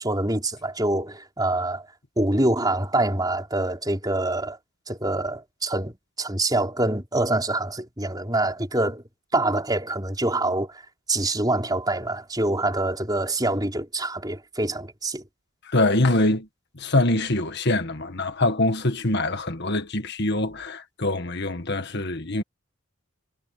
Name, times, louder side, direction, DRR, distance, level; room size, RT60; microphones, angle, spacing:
voice 1, 0.0-1.9 2.2-4.6 4.9-9.0 9.3-10.8 11.1-15.2, right 2 dB, 20° right, 5.0 m, -25 dB
voice 2, 15.6-16.5 16.8-22.4, left 2 dB, 50° left, 1.8 m, -24 dB
head